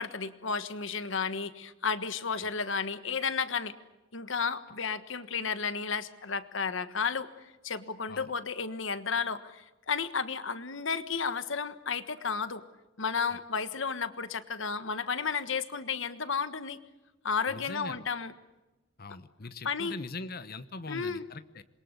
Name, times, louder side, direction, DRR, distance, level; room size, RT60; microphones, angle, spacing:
voice 1, 0.0-3.7 4.1-7.3 7.6-12.6 13.0-16.8 17.2-18.3 19.6-20.0 20.9-21.3, left 5 dB, 65° left, 12 dB, 1.4 m, -32 dB
voice 2, 17.5-18.1 19.0-21.6, left 3 dB, 50° left, 12 dB, 1.1 m, -42 dB
27.5 x 22.5 x 8.2 m, 1.1 s
head